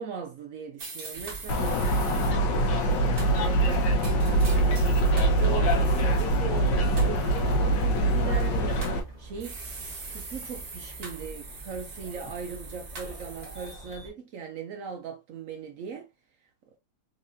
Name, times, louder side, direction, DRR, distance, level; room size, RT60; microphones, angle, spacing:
voice 1, 0.0-2.6 3.0-4.9 5.4-9.6 10.1-16.1, right 6 dB, 75° right, 0.7 m, -39 dB
sound 1, 0.8-2.3 3.2-5.4 5.8-6.3 7.0-7.4 8.3-9.0 9.4-13.7, right 4 dB, 55° right, 1.7 m, -42 dB
sound 2, 1.1-14.1, right 2 dB, 20° left, 1.9 m, -45 dB
sound 3, 1.5-9.0, right 1 dB, 75° left, 1.6 m, -23 dB
4.0 x 3.8 x 2.5 m
omnidirectional pair, 2.0 m